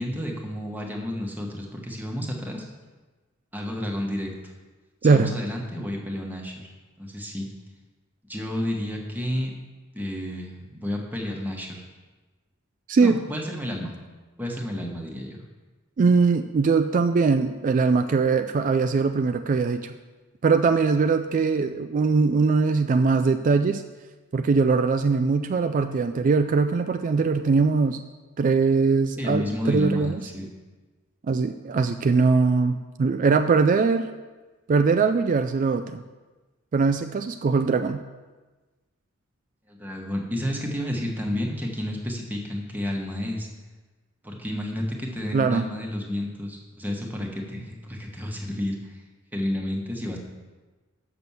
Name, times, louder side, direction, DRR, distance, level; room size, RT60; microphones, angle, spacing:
voice 1, 0.0-2.6 3.5-4.3 5.1-6.7 7.0-7.5 8.3-9.5 9.9-11.8 13.0-13.9 14.4-15.4 29.2-30.5 39.7-43.5 44.2-49.0 49.3-50.2, left 1 dB, 10° right, 0 dB, 1.2 m, -31 dB
voice 2, 5.0-5.3 12.9-13.2 16.0-19.9 20.4-23.8 24.3-28.0 28.4-30.2 31.3-34.1 34.7-36.0 36.7-38.0 45.3-45.7, right 4 dB, 40° right, 8 dB, 0.3 m, -21 dB
6.8 x 6.1 x 7.0 m, 1.2 s
head